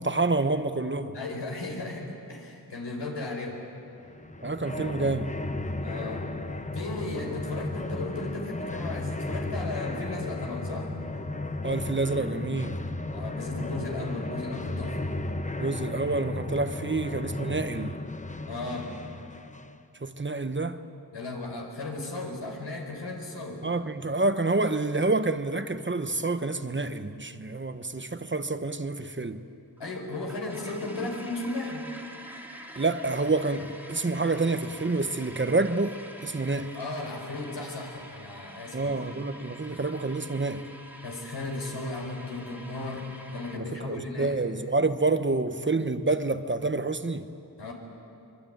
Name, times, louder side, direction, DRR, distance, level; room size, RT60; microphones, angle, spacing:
voice 1, 0.0-1.2 4.4-5.3 11.6-12.8 15.5-17.9 20.0-20.8 23.6-29.4 32.8-36.7 38.7-40.6 43.6-47.3, right 3 dB, 30° right, 1.0 m, -28 dB
voice 2, 1.1-3.6 5.8-6.2 6.7-10.9 13.0-15.1 18.5-18.9 21.1-23.6 29.8-31.9 36.7-39.2 41.0-43.1 43.3-44.4 47.6-47.7, left 2 dB, 90° left, 4.9 m, -35 dB
sound 1, 4.0-19.8, left 2 dB, 20° left, 0.9 m, -34 dB
sound 2, 29.8-43.6, equal, 5° right, 2.3 m, -46 dB
24.5 x 22.5 x 9.3 m
wide cardioid pair, 85°, 41 cm